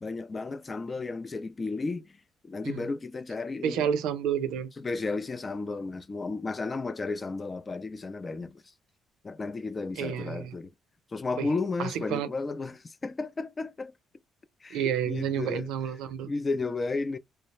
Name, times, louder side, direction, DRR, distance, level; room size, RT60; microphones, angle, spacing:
voice 1, 0.0-3.9 4.8-8.6 9.2-10.7 11.1-13.9 14.6-15.7 16.2-17.2, left 3 dB, 25° left, 0.3 m, -33 dB
voice 2, 3.6-4.7 10.0-10.6 11.4-11.5 11.8-12.3 14.7-16.3, right 9 dB, 85° right, 0.5 m, -30 dB
2.3 x 2.0 x 2.8 m
cardioid pair, 105°, 0 cm